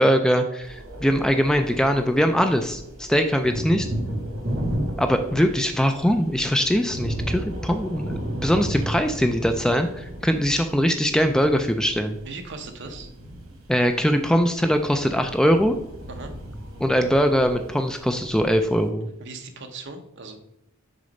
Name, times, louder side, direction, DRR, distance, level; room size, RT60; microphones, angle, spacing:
voice 1, 0.0-3.9 5.0-12.2 13.7-15.8 16.8-19.1, equal, 5° left, 6 dB, 0.3 m, -21 dB
sound 1, 0.6-18.9, right 1 dB, 85° right, 1.7 m, -43 dB
Thunder, 3.0-18.0, right 1 dB, 30° right, 2.3 m, -34 dB
voice 2, 12.2-13.1 16.1-16.3 19.2-20.4, right 3 dB, 55° right, 6 dB, 0.9 m, -38 dB
6.4 x 3.9 x 5.2 m, 0.77 s
head